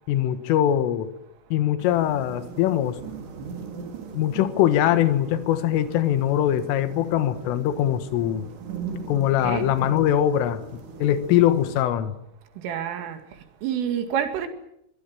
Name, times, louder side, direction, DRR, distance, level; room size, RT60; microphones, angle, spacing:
voice 1, 0.1-1.1 1.5-3.0 4.2-8.5 9.1-10.6 11.0-12.2, left 11 dB, 80° left, 4.0 m, -22 dB
sound 1, 1.8-11.8, right 5 dB, 60° right, 5.4 m, -39 dB
voice 2, 9.4-9.8 12.6-14.5, right 9 dB, 80° right, 4.8 m, -29 dB
24.0 x 22.5 x 8.9 m
omnidirectional pair, 5.8 m